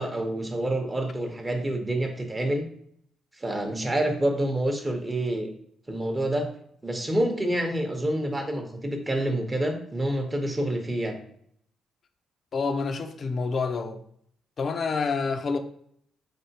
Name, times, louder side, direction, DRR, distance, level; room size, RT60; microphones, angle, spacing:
voice 1, 0.0-2.7 3.4-5.5 5.9-6.5 6.8-11.2, right 1 dB, 20° right, 0.7 m, -27 dB
voice 2, 12.5-14.0 14.6-15.6, left 4 dB, 50° left, 0.4 m, -28 dB
3.7 x 3.4 x 2.8 m
cardioid pair, 90°, 0 cm